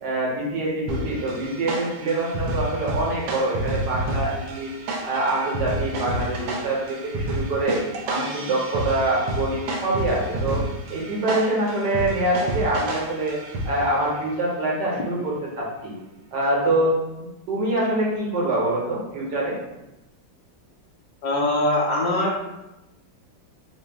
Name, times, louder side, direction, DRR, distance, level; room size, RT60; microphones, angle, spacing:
voice 1, 0.0-4.7 5.0-7.8 8.0-10.6 10.9-13.4 13.6-15.9 16.3-16.9 17.5-19.6, right 1 dB, 65° right, -4 dB, 1.4 m, -25 dB
sound 1, 0.9-14.0, right 1 dB, 85° right, 1.3 m, -30 dB
voice 2, 21.2-22.4, left 1 dB, 70° left, -3 dB, 1.3 m, -22 dB
4.0 x 2.3 x 3.3 m, 0.97 s
omnidirectional pair, 2.1 m